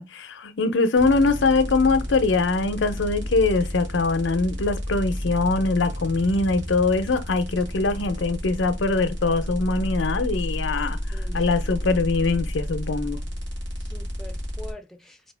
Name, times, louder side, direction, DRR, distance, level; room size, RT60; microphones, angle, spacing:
voice 1, 0.0-11.0 11.3-13.2, left 3 dB, 80° left, 0.6 m, -22 dB
sound 1, 0.9-14.7, equal, 70° right, 1.9 m, -31 dB
voice 2, 7.8-8.5 11.1-12.0 13.8-15.3, left 1 dB, ahead, 0.6 m, -45 dB
4.2 x 2.8 x 3.3 m
head